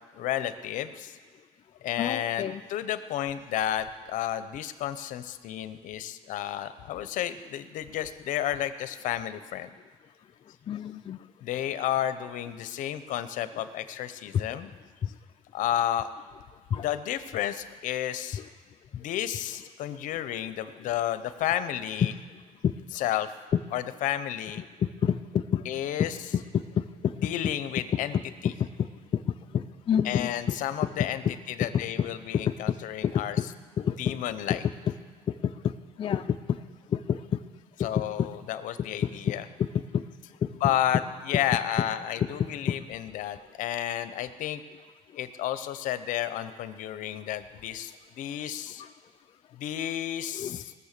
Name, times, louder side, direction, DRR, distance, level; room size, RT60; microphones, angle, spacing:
voice 1, 0.1-1.2 1.8-9.7 11.4-14.7 15.5-16.1 16.7-18.4 18.9-22.2 22.9-23.3 23.7-24.6 25.6-26.4 27.1-28.5 30.0-33.5 33.9-34.6 37.8-39.5 40.5-44.6 45.2-48.8 49.5-50.6, left 11 dB, 75° left, 12 dB, 0.7 m, -32 dB
voice 2, 2.0-2.6 10.7-11.3 14.3-14.4 15.0-15.1 16.7-16.9 18.3-18.5 22.3-23.0 24.6-25.7 26.0-26.1 26.3-27.3 27.8-27.9 28.4-30.5 32.0-32.1 32.3-32.8 33.0-33.5 33.8-34.2 35.3-36.6 36.9-37.4 37.8-38.3 38.8-40.0 40.4-40.7 41.8-41.9 42.4-42.8 48.8-48.9 50.3-50.6, left 8 dB, 40° left, 7 dB, 0.4 m, -29 dB
19.0 x 7.1 x 6.7 m, 1.5 s
cardioid pair, 125°, 13 cm